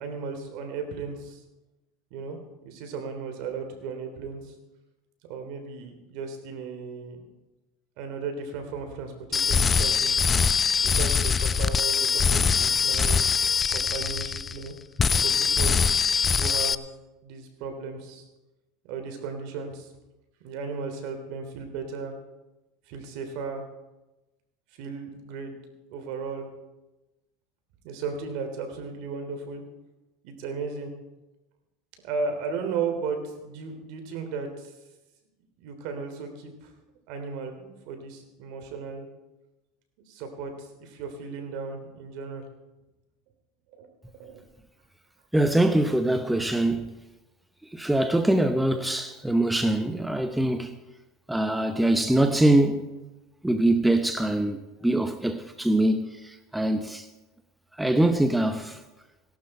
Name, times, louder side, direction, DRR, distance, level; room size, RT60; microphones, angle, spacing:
voice 1, 0.0-1.4 2.1-4.5 5.3-7.2 8.0-10.1 10.8-13.3 13.7-14.7 15.2-15.8 16.4-16.9 17.2-18.2 18.9-19.9 20.4-22.1 22.9-23.6 24.8-25.5 25.9-26.5 27.8-29.6 30.2-30.9 32.0-34.7 35.6-36.7 37.1-39.1 40.1-42.4 43.7-43.9 44.2-44.4, right 5 dB, 65° right, 3.2 m, -35 dB
sound 1, 9.3-14.7 15.0-16.8, left 6 dB, 25° left, 0.5 m, -23 dB
voice 2, 45.3-47.0 47.7-50.8 51.3-52.9 53.4-57.1 57.8-58.8, right 1 dB, 5° right, 0.8 m, -23 dB
17.5 x 12.0 x 4.4 m
supercardioid pair, 115°, 0 cm